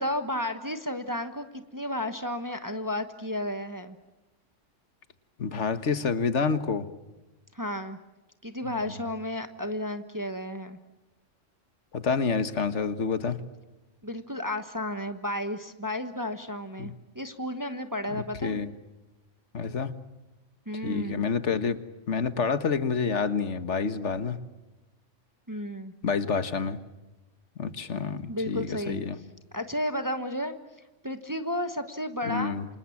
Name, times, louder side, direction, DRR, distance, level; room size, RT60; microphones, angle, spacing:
voice 1, 0.0-4.0 7.5-8.0 8.4-10.8 14.0-18.6 20.7-21.2 25.5-25.9 28.3-29.0 29.5-30.6 31.0-32.6, left 1 dB, 15° right, 8 dB, 1.2 m, -32 dB
voice 2, 5.4-6.9 11.9-13.4 16.8-16.9 18.1-18.7 19.5-19.9 20.8-21.8 22.1-24.4 26.0-26.8 27.6-29.2 32.2-32.7, left 5 dB, 65° left, 11 dB, 1.7 m, -28 dB
28.5 x 26.5 x 7.3 m, 1.1 s
omnidirectional pair, 1.3 m